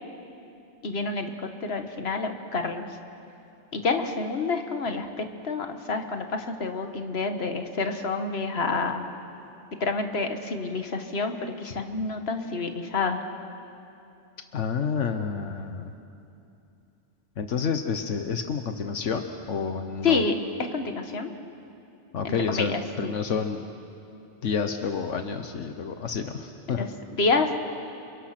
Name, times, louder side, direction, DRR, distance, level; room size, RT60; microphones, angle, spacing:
voice 1, 0.8-2.9 3.7-9.0 9.8-13.2 20.0-20.4 20.7-21.3 22.2-23.1 26.7-27.5, left 4 dB, 60° left, 6 dB, 1.7 m, -28 dB
voice 2, 14.5-15.9 17.4-20.2 22.1-23.6 24.4-26.3 26.7-26.9, left 6 dB, 80° left, 6 dB, 1.3 m, -29 dB
30.0 x 28.5 x 6.0 m, 2.7 s
omnidirectional pair, 1.2 m